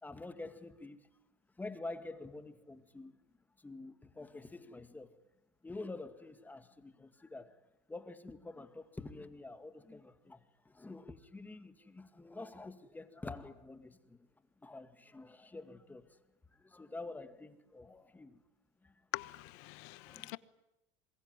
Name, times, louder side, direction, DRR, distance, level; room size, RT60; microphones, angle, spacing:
voice 1, 0.0-1.1 1.6-3.2 3.6-5.1 5.6-7.6 7.9-14.3 14.6-16.2 16.5-18.4 18.8-19.0 19.9-20.4, left 2 dB, 10° left, 2.1 m, -48 dB
voice 2, 19.1-20.4, left 23 dB, 75° left, 1.2 m, -43 dB
27.0 x 22.0 x 9.5 m
supercardioid pair, 120°, 15 cm